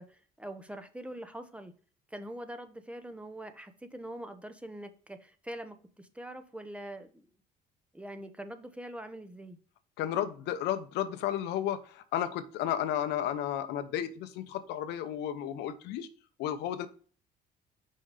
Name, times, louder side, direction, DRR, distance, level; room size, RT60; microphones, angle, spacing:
voice 1, 0.0-1.7 2.1-7.3 7.9-9.6, right 1 dB, 5° right, 8 dB, 0.7 m, -43 dB
voice 2, 10.0-16.1 16.4-16.9, left 10 dB, 85° left, 10 dB, 0.8 m, -33 dB
5.6 x 5.3 x 3.3 m, 0.41 s
cardioid pair, 110°, 17 cm